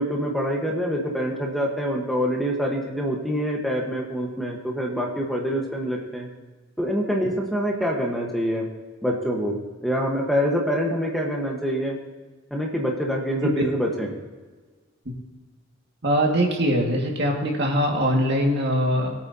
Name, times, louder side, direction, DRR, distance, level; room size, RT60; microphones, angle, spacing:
voice 1, 0.0-6.3 6.8-8.7 9.0-12.0 12.5-14.1, equal, ahead, -1 dB, 1.3 m, -25 dB
voice 2, 16.0-19.1, equal, 55° right, 0 dB, 2.1 m, -22 dB
21.0 x 8.6 x 2.9 m, 1.4 s
head